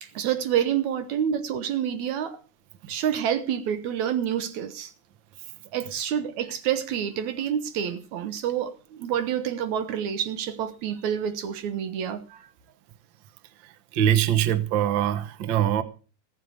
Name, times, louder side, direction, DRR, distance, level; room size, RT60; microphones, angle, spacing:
voice 1, 0.0-2.4 2.9-4.9 5.7-12.5, right 9 dB, 70° right, 2.1 m, -28 dB
voice 2, 13.6-15.8, right 11 dB, 90° right, 1.0 m, -23 dB
19.0 x 7.6 x 6.4 m
omnidirectional pair, 3.8 m